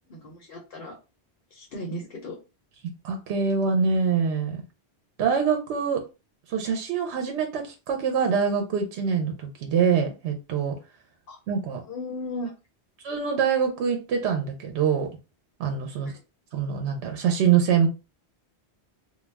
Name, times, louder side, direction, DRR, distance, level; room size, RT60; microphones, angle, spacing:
voice 1, 0.1-1.0 1.5-2.4 11.3-11.4 11.9-12.5 16.0-16.2, left 1 dB, 60° left, 0 dB, 0.8 m, -36 dB
voice 2, 3.0-4.6 5.2-6.0 6.5-10.7 11.5-11.8 13.0-15.1 15.6-16.1 16.5-17.9, right 6 dB, 80° right, 4 dB, 0.9 m, -24 dB
2.3 x 2.2 x 3.2 m, 0.29 s
omnidirectional pair, 1.1 m